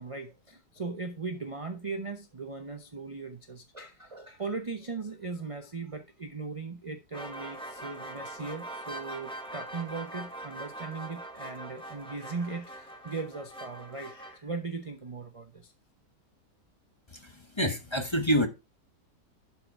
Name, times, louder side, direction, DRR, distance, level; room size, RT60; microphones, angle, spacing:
voice 1, 0.0-15.7, right 4 dB, 30° right, 0.6 m, -38 dB
sound 1, 7.1-14.4, right 1 dB, 5° left, 1.3 m, -42 dB
voice 2, 17.1-18.5, equal, 20° left, 1.1 m, -27 dB
11.5 x 4.8 x 4.7 m
omnidirectional pair, 1.8 m